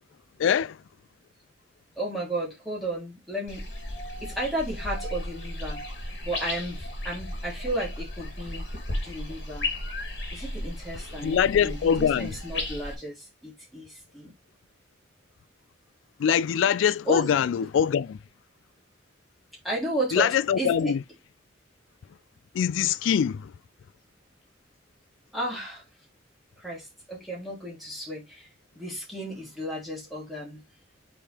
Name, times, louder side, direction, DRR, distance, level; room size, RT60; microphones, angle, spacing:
voice 1, 0.4-0.8 11.1-12.3 16.2-18.2 20.1-21.0 22.5-23.5, left 8 dB, 90° left, 0.3 m, -23 dB
voice 2, 2.0-3.7 4.2-8.6 9.0-9.7 10.3-14.3 17.0-17.3 19.6-20.9 25.3-25.8 26.6-28.5 28.7-30.6, right 1 dB, ahead, 3.1 m, -33 dB
sound 1, 3.5-12.9, left 1 dB, 60° left, 2.6 m, -35 dB
7.0 x 4.3 x 3.3 m
head